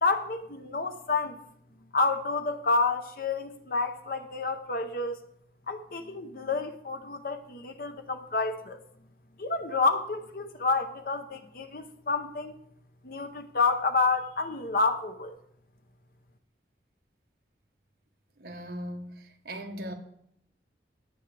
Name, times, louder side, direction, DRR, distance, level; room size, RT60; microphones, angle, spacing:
voice 1, 0.0-1.4 1.9-5.2 5.7-8.8 9.4-12.5 13.0-15.4, left 3 dB, 50° left, 0.8 m, -29 dB
voice 2, 18.4-19.9, equal, 60° right, 1.2 m, -39 dB
18.5 x 7.2 x 3.4 m
head